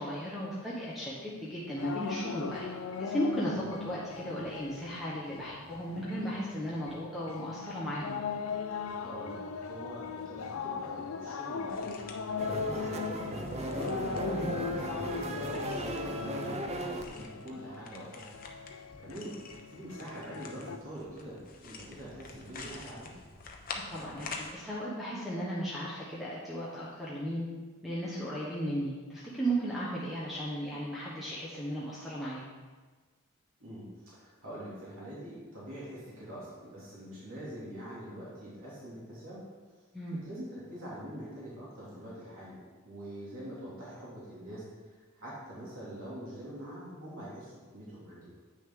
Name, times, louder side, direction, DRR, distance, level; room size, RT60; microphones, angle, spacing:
voice 1, 0.0-2.7 3.0-8.2 14.3-14.5 23.9-27.5 27.8-32.4 39.9-40.2, equal, ahead, -7 dB, 1.1 m, -35 dB
sound 1, 1.8-20.8, left 5 dB, 75° left, 0.4 m, -39 dB
voice 2, 9.0-11.9 12.4-13.6 14.2-18.2 19.0-19.4 19.7-23.1 33.6-39.4 40.1-42.6 42.8-44.6 45.1-48.4, right 1 dB, 75° right, -8 dB, 2.7 m, -44 dB
sound 2, 11.7-24.5, left 4 dB, 40° left, 0.8 m, -48 dB
sound 3, 12.4-17.1, right 2 dB, 30° right, 0.5 m, -37 dB
8.6 x 6.4 x 3.7 m, 1.4 s
head